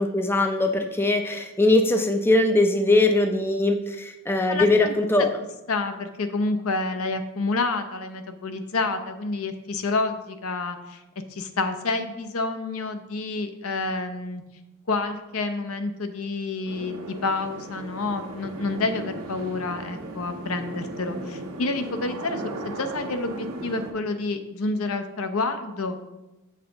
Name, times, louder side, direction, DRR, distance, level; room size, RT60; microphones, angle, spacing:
voice 1, 0.0-5.3, left 2 dB, 10° left, 5 dB, 0.4 m, -21 dB
voice 2, 4.5-5.3 5.7-11.0 11.3-14.4 14.9-26.0, left 3 dB, 70° left, 8 dB, 0.7 m, -29 dB
sound 1, 16.6-23.9, right 2 dB, 85° right, 1.1 m, -36 dB
7.0 x 5.6 x 3.8 m, 1.0 s
head